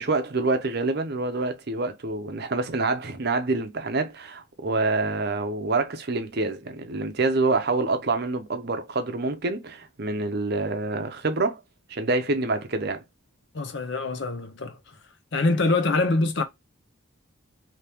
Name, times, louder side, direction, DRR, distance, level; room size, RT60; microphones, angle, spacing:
voice 1, 0.0-11.6 11.9-13.0, right 3 dB, 50° right, 0.7 m, -26 dB
voice 2, 13.5-14.8 15.3-16.4, left 3 dB, 55° left, 0.7 m, -24 dB
2.9 x 2.9 x 3.4 m
head